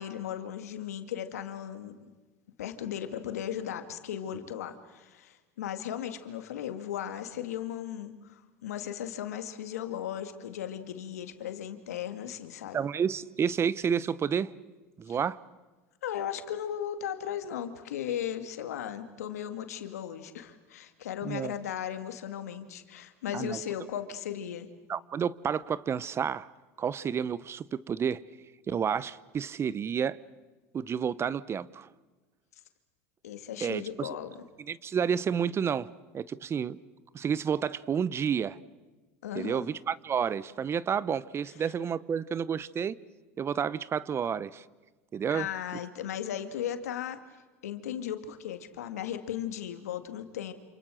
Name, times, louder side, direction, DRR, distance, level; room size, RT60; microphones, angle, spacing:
voice 1, 0.0-1.9 2.6-12.8 15.1-15.2 16.0-24.7 33.2-34.4 39.2-39.7 45.3-47.2 47.6-50.5, left 10 dB, 90° left, 2.1 m, -36 dB
voice 2, 12.7-14.5 15.0-15.4 21.2-21.5 23.3-23.6 24.9-26.5 26.8-28.2 28.7-30.2 30.7-31.9 33.6-34.1 34.7-35.9 36.1-36.8 37.1-38.6 39.3-43.0 43.4-44.6 45.1-45.5, right 7 dB, 30° right, 0.9 m, -30 dB
28.5 x 28.0 x 6.5 m
hypercardioid pair, 90°, 8 cm